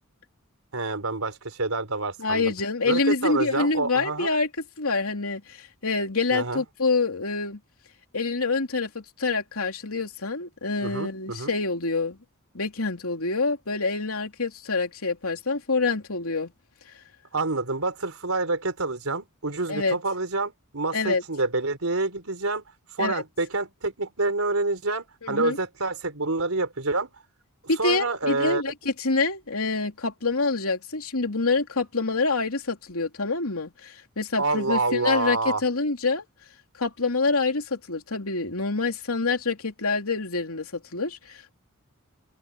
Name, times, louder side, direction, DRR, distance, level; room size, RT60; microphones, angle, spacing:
voice 1, 0.7-2.5 2.8-4.3 6.3-6.6 10.8-11.5 17.3-22.6 22.9-27.1 27.8-28.6 34.4-35.6, right 3 dB, 75° right, 4.1 m, -27 dB
voice 2, 2.2-4.5 4.8-7.6 8.1-12.2 12.5-16.5 19.7-20.0 20.9-21.2 23.0-23.2 25.2-25.6 27.7-36.2 36.8-41.5, left 3 dB, 80° left, 3.0 m, -26 dB
open air
head